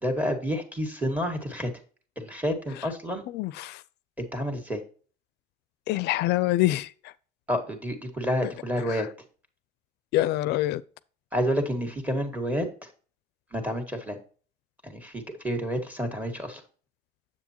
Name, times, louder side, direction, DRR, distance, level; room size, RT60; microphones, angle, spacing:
voice 1, 0.0-1.7 2.2-3.2 4.2-4.8 7.5-9.1 11.3-12.9 13.5-14.2 14.8-16.6, equal, 10° right, 1.8 m, -29 dB
voice 2, 3.3-3.8 5.9-6.9 10.1-10.8, left 16 dB, 80° left, 0.4 m, -25 dB
7.5 x 7.2 x 2.9 m
cardioid pair, 110°, 17 cm